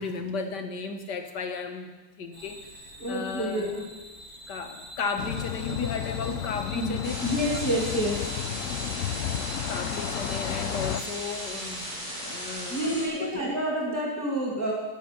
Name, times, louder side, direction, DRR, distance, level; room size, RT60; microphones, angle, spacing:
voice 1, 0.0-1.9 2.2-2.6 3.1-3.8 4.5-7.2 8.9-9.1 9.7-13.3, left 4 dB, 85° left, 6 dB, 1.9 m, -34 dB
sound 1, 2.3-12.0, equal, 65° right, 2.8 m, -45 dB
voice 2, 3.0-3.8 6.7-8.2 12.7-14.7, equal, 10° left, -3 dB, 2.3 m, -28 dB
sound 2, 5.2-11.0, left 11 dB, 70° left, 0.8 m, -33 dB
sound 3, 7.0-13.1, equal, 20° right, 5.3 m, -36 dB
21.0 x 7.7 x 6.0 m, 1.2 s
omnidirectional pair, 1.8 m